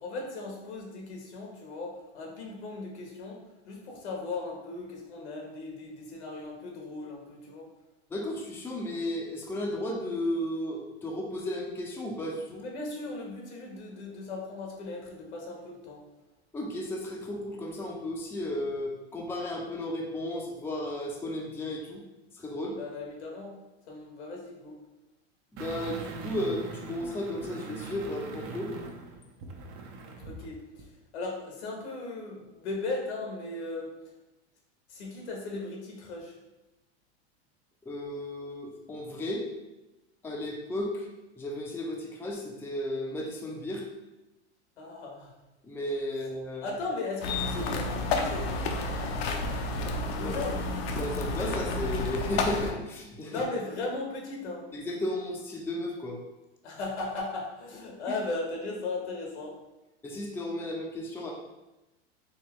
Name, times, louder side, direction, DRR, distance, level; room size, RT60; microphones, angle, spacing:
voice 1, 0.0-7.7 12.6-16.0 22.8-23.5 23.9-24.8 30.2-30.9 31.1-33.9 34.9-36.3 44.8-45.3 46.6-48.5 50.1-50.6 53.3-54.6 56.6-59.5, left 3 dB, 85° left, -1 dB, 1.4 m, -37 dB
voice 2, 8.1-12.7 16.5-22.0 22.3-22.8 25.5-28.7 37.8-39.5 40.2-41.1 41.4-43.9 45.6-46.7 50.2-50.3 50.9-53.4 54.7-56.2 58.1-58.2 60.0-61.3, left 1 dB, 5° left, -1 dB, 0.5 m, -34 dB
sound 1, 25.6-30.5 30.8-30.9, right 4 dB, 40° right, 0.7 m, -41 dB
sound 2, 47.2-52.7, left 2 dB, 65° left, 0.7 m, -30 dB
4.5 x 2.8 x 3.1 m, 1.0 s
hypercardioid pair, 105°, 33 cm